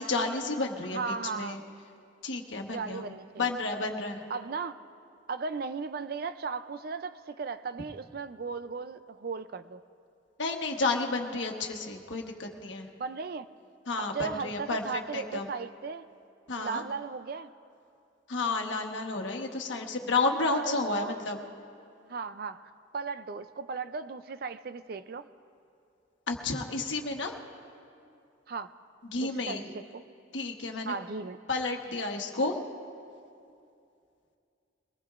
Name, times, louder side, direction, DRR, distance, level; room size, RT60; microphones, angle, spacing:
voice 1, 0.0-1.6 2.2-3.1 3.4-4.2 10.4-12.9 13.9-15.5 16.5-16.8 18.3-21.4 26.3-27.4 29.0-29.6 30.3-30.9 31.5-32.6, left 3 dB, 80° left, 3 dB, 1.2 m, -31 dB
voice 2, 0.9-1.6 2.7-3.5 4.3-4.7 5.3-9.8 13.0-13.5 14.0-16.0 16.6-17.5 20.5-21.2 22.1-22.6 22.9-25.3 28.5-28.7 29.2-29.8 30.8-31.4, right 5 dB, 50° right, 12 dB, 0.4 m, -36 dB
22.5 x 19.5 x 2.5 m, 2.5 s
head